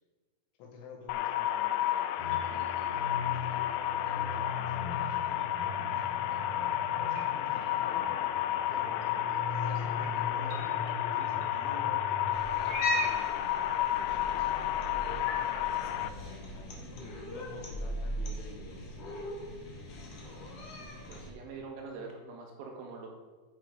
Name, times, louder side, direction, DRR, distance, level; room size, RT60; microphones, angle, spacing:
voice 1, 0.6-5.4 5.9-6.0 6.9-8.1 8.7-9.2 9.5-12.1 12.9-19.0, left 4 dB, 70° left, 0 dB, 4.0 m, -49 dB
sound 1, 1.1-16.1, left 12 dB, 90° left, 3.3 m, -31 dB
sound 2, 2.2-13.1, left 2 dB, 60° right, 2.3 m, -41 dB
Cat, 12.3-21.3, equal, 55° left, 2.5 m, -38 dB
voice 2, 20.2-20.6 21.1-23.1, right 4 dB, 80° right, 0 dB, 4.5 m, -44 dB
9.9 x 7.5 x 5.3 m, 1.4 s
omnidirectional pair, 6.0 m